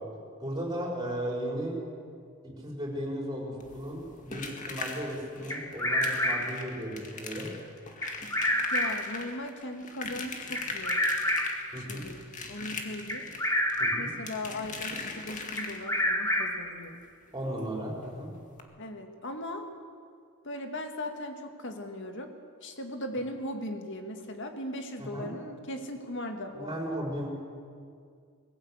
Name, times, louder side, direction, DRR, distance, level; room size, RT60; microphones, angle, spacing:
voice 1, 0.4-1.7 2.6-7.5 11.7-12.1 13.8-14.1 17.3-18.3 25.0-25.3 26.5-27.3, equal, 20° right, -3 dB, 5.5 m, -35 dB
sound 1, 3.6-16.1 17.6-17.7 18.0-18.1 18.5-18.6, left 4 dB, 35° left, 2.0 m, -40 dB
Bird vocalization bird call bird song, 5.5-6.7 8.0-9.1 10.5-11.7 13.1-14.2 15.6-16.7, left 1 dB, 15° left, 1.6 m, -29 dB
voice 2, 8.7-11.0 11.8-12.2 12.5-13.2 14.0-17.0 18.8-19.7 20.4-22.3 22.6-26.8, left 1 dB, 60° left, 5 dB, 2.1 m, -38 dB
21.5 x 14.5 x 8.4 m, 2.2 s
head